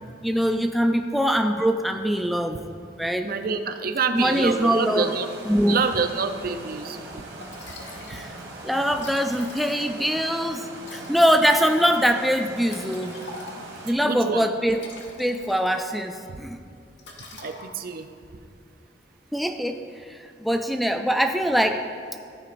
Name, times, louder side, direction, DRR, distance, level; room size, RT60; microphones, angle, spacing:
voice 1, 0.2-2.6 3.0-3.4 4.1-5.2 5.4-5.9 8.1-8.3 8.6-13.2 13.8-14.8 15.2-16.6 19.3-21.8, equal, ahead, 5 dB, 0.3 m, -23 dB
voice 2, 3.2-5.3 5.7-7.0 14.0-14.4 17.3-18.1, right 5 dB, 55° right, 8 dB, 0.5 m, -27 dB
sound 1, 4.1-13.9, right 2 dB, 85° right, 2.1 m, -41 dB
Liquid, 7.4-8.3 8.6-8.7 8.9-10.2 10.8-13.9 14.5-16.1 16.4-16.6 17.0-18.0, left 3 dB, 85° left, 1.4 m, -44 dB
14.0 x 8.9 x 2.5 m, 2.5 s
head